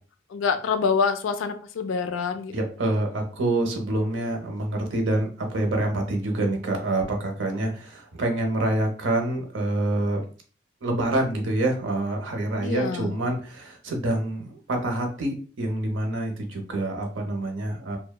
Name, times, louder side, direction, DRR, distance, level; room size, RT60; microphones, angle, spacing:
voice 1, 0.3-2.5 12.6-13.2, left 5 dB, 85° left, 9 dB, 0.3 m, -26 dB
voice 2, 2.5-10.2 10.8-18.0, right 1 dB, 80° right, 3 dB, 0.7 m, -26 dB
2.8 x 2.1 x 2.2 m, 0.40 s
head